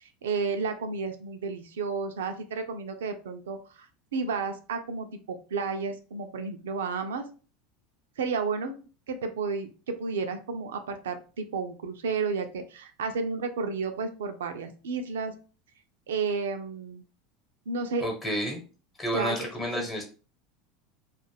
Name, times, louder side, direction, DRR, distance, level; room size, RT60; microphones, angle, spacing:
voice 1, 0.0-3.9 4.1-7.3 8.2-8.8 9.1-15.3 16.1-17.0 17.7-18.1 19.1-19.9, right 4 dB, 85° right, 7 dB, 0.4 m, -32 dB
voice 2, 18.0-18.6 19.0-20.0, equal, 25° left, 0 dB, 1.0 m, -30 dB
2.4 x 2.1 x 3.3 m, 0.37 s
hypercardioid pair, 95°, 0 cm